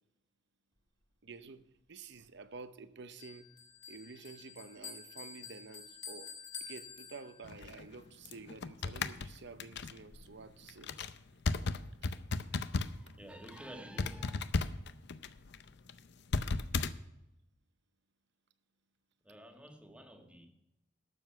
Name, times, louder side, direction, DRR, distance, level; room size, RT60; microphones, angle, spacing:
voice 1, 1.2-3.5 3.9-6.3 6.6-10.9 12.0-12.1, right 4 dB, 65° right, 0.8 m, -50 dB
Bell, 3.2-7.7, left 6 dB, 30° left, 2.3 m, -49 dB
sound 1, 7.4-13.1 13.4-13.6 14.0-16.9, left 3 dB, 65° left, 0.6 m, -36 dB
voice 2, 12.7-14.5 19.2-20.5, right 1 dB, 5° right, 1.6 m, -51 dB
12.5 x 7.1 x 5.7 m
head